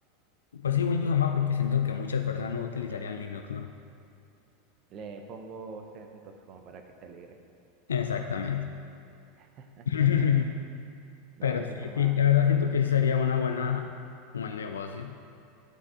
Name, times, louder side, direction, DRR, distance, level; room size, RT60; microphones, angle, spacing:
voice 1, 0.5-3.7 7.9-8.7 9.9-10.6 11.4-14.0 14.3-15.2, left 8 dB, 80° left, 5 dB, 0.4 m, -26 dB
voice 2, 4.9-7.4 9.4-9.9 11.4-12.4, right 4 dB, 45° right, 5 dB, 0.8 m, -45 dB
11.0 x 4.8 x 3.7 m, 2.6 s
hypercardioid pair, 85°, 0 cm